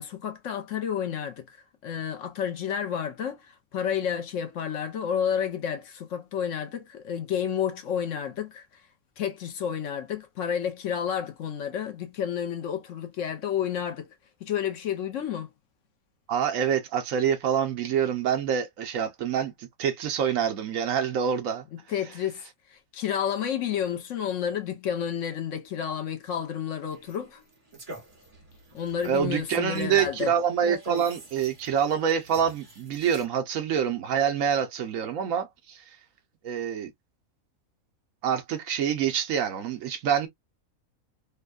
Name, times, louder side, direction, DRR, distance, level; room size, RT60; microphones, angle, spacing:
voice 1, 0.0-8.8 9.2-14.1 14.4-15.5 21.7-27.4 28.7-30.3, left 8 dB, 65° left, 0.9 m, -31 dB
voice 2, 16.3-21.6 29.0-35.8 36.4-36.9 38.2-40.3, right 8 dB, 70° right, 1.0 m, -26 dB
sound 1, 26.9-33.2, right 1 dB, 25° right, 1.2 m, -45 dB
3.4 x 2.2 x 2.3 m
omnidirectional pair, 1.5 m